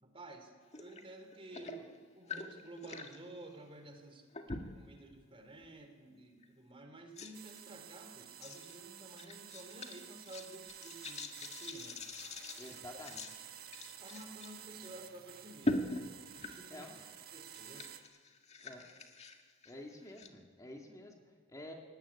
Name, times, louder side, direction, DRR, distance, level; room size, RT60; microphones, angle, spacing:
voice 1, 0.0-4.2 4.7-12.0 12.6-12.8 14.0-16.0 16.4-16.9 17.3-17.9, right 2 dB, 30° right, 6 dB, 3.2 m, -52 dB
sound 1, 0.7-1.0 1.3-3.2 4.3-4.9 5.5-5.7 6.4-6.5 7.2-7.6 8.4-8.8 9.2-14.5 14.8-14.9 15.6-17.0 17.4-20.3, left 2 dB, 35° left, 1.7 m, -42 dB
sound 2, 7.3-18.0, right 10 dB, 50° right, 1.6 m, -52 dB
voice 2, 12.6-13.4 16.7-17.0 18.6-18.8 19.7-21.7, left 1 dB, 15° left, 1 dB, 2.4 m, -50 dB
22.0 x 17.5 x 9.9 m, 1.5 s
head